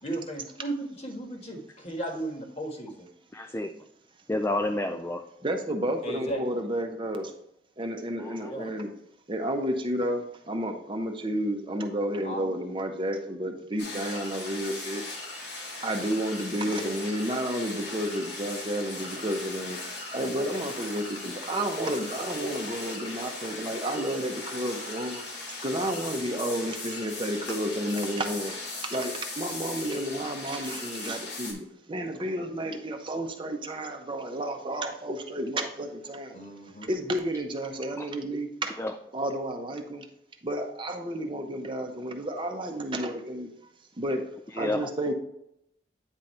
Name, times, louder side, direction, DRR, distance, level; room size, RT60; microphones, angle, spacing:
voice 1, 0.0-3.1 6.0-6.4 8.4-8.7 12.2-12.5 14.1-14.3 16.5-16.9 36.3-36.9, right 1 dB, 35° left, 2 dB, 1.4 m, -36 dB
voice 2, 3.3-3.7 4.3-5.2 8.2-8.5 38.0-38.1 38.8-38.9 44.6-44.8, left 1 dB, 15° left, 6 dB, 0.3 m, -29 dB
voice 3, 5.4-7.3 7.8-8.9 9.3-15.0 15.8-19.8 20.1-25.2 25.6-28.5 28.9-36.4 36.9-38.7 39.1-40.0 40.4-43.5 44.0-44.2 44.6-45.1, right 1 dB, 30° right, 4 dB, 0.7 m, -31 dB
sound 1, 13.8-31.5, left 2 dB, 80° left, 1.9 m, -38 dB
9.0 x 4.0 x 4.3 m, 0.78 s
head